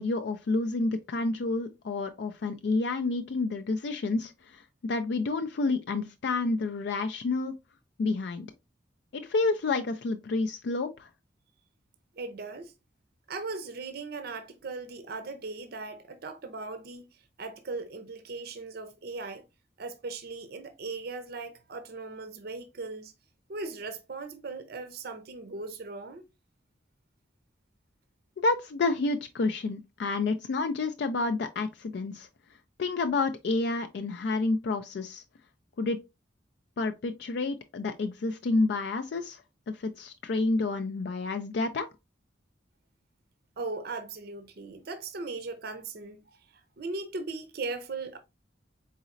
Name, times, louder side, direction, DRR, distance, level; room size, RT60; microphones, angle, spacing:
voice 1, 0.0-7.5 8.0-8.5 9.1-11.1 28.4-32.3 32.8-35.2 35.8-36.0 36.8-39.4 39.7-41.9, left 3 dB, 60° left, 0.4 m, -29 dB
voice 2, 12.2-12.7 13.3-17.1 17.4-19.4 19.8-23.1 23.5-26.2 43.6-46.3 46.8-48.2, right 3 dB, 55° right, 0.5 m, -38 dB
4.1 x 3.9 x 2.4 m
head